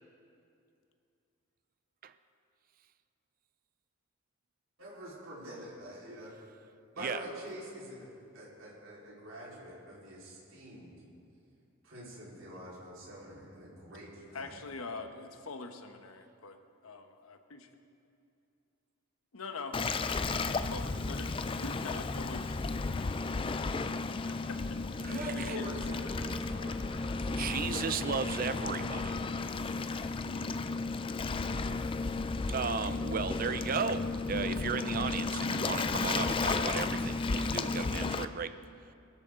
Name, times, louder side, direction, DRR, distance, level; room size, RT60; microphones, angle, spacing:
voice 1, 4.8-6.3 6.9-8.1 8.3-11.0 11.8-14.6 25.1-27.5, equal, 70° right, -7 dB, 4.3 m, -45 dB
voice 2, 14.3-17.7 19.3-19.8 20.6-22.5 23.8-25.8, left 3 dB, 85° left, 6 dB, 1.1 m, -44 dB
Waves surf, 19.7-38.3, left 3 dB, 25° left, 0.4 m, -33 dB
voice 3, 25.0-25.6 27.3-29.8 32.5-38.5, right 6 dB, 40° right, 12 dB, 0.4 m, -35 dB
22.0 x 13.0 x 3.8 m, 2.6 s
head